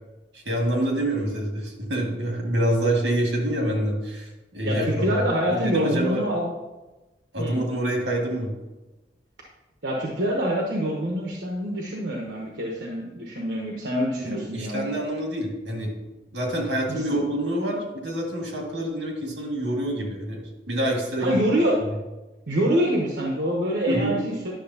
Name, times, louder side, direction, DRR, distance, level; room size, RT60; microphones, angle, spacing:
voice 1, 0.3-6.3 7.3-8.5 14.3-15.9 16.3-21.4 23.9-24.1, right 1 dB, 90° right, 0 dB, 1.9 m, -26 dB
voice 2, 4.6-6.5 7.4-7.6 9.8-14.9 16.9-17.0 21.2-21.8 22.5-24.5, equal, 70° right, -1 dB, 1.0 m, -25 dB
10.0 x 6.3 x 2.8 m, 1.1 s
head